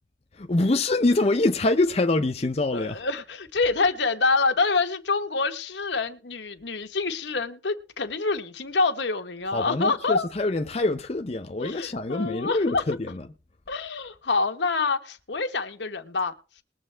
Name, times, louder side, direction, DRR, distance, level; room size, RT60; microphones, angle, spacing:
voice 1, 0.3-3.0 9.5-13.2, left 2 dB, 35° left, 0.6 m, -25 dB
voice 2, 2.7-10.3 11.6-12.8 13.7-16.3, left 3 dB, 80° left, 1.2 m, -26 dB
21.0 x 7.4 x 3.3 m
head